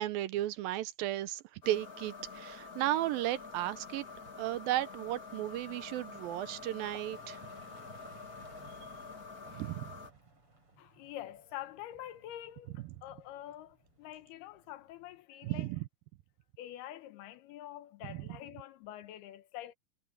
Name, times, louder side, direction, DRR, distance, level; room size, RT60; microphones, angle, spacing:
voice 1, 0.0-4.1 4.4-7.4 9.5-9.9 15.4-15.8 18.1-18.2, right 14 dB, 80° right, 2.3 m, -34 dB
sound 1, 1.6-10.1, left 4 dB, 35° left, 1.5 m, -48 dB
sound 2, 3.4-15.2, right 2 dB, 35° right, 7.4 m, -60 dB
voice 2, 10.8-15.7 16.6-19.7, left 13 dB, 90° left, 3.0 m, -46 dB
omnidirectional pair, 4.5 m